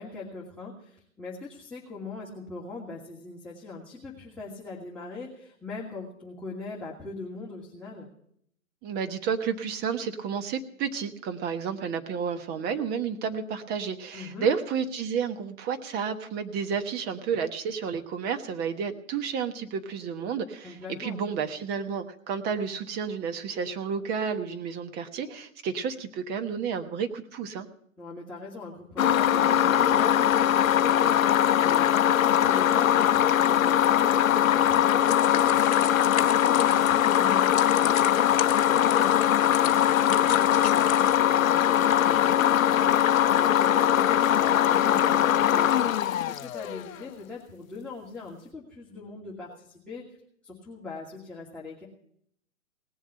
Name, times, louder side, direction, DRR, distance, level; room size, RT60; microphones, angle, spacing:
voice 1, 0.0-8.1 14.1-14.5 20.6-21.2 28.0-50.0 50.4-51.8, left 3 dB, 5° left, -6 dB, 2.5 m, -41 dB
voice 2, 8.8-27.7, right 6 dB, 25° right, 8 dB, 1.2 m, -31 dB
sound 1, 29.0-47.0, left 10 dB, 75° left, 0.6 m, -21 dB
sound 2, 35.1-41.2, left 10 dB, 55° left, 1.4 m, -37 dB
18.5 x 7.2 x 8.7 m, 0.68 s
hypercardioid pair, 125°, 40 cm